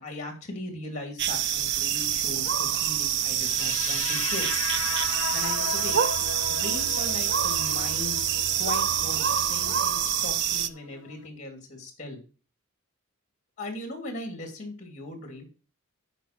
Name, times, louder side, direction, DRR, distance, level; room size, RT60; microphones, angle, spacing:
voice 1, 0.0-4.5 5.3-6.0 6.5-8.3 8.5-12.2 13.6-15.5, left 2 dB, 35° left, 4 dB, 2.7 m, -38 dB
sound 1, 1.2-10.7, right 9 dB, 55° right, 0.5 m, -26 dB
sound 2, 3.2-11.3, left 8 dB, 90° left, 0.6 m, -37 dB
8.2 x 5.5 x 5.9 m, 0.35 s
head